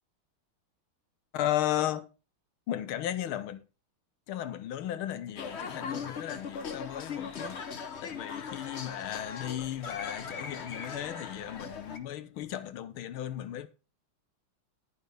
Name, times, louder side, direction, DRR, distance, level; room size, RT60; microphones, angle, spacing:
voice 1, 1.3-2.1 2.7-3.6 4.3-7.7 8.0-13.7, left 12 dB, 80° left, 1.6 m, -35 dB
sound 1, 5.4-12.0, left 6 dB, 45° left, 0.9 m, -39 dB
11.5 x 5.7 x 5.0 m
omnidirectional pair, 2.4 m